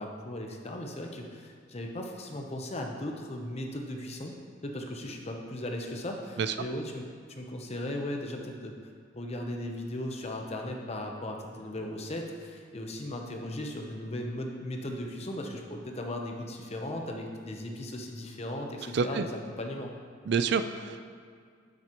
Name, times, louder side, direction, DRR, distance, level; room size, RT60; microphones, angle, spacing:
voice 1, 0.0-4.4 4.6-7.1 7.4-8.7 9.1-19.9, left 1 dB, 35° left, 2 dB, 0.8 m, -37 dB
voice 2, 18.9-19.2 20.3-21.1, right 5 dB, 60° right, 10 dB, 0.4 m, -28 dB
9.2 x 7.7 x 3.0 m, 2.1 s
head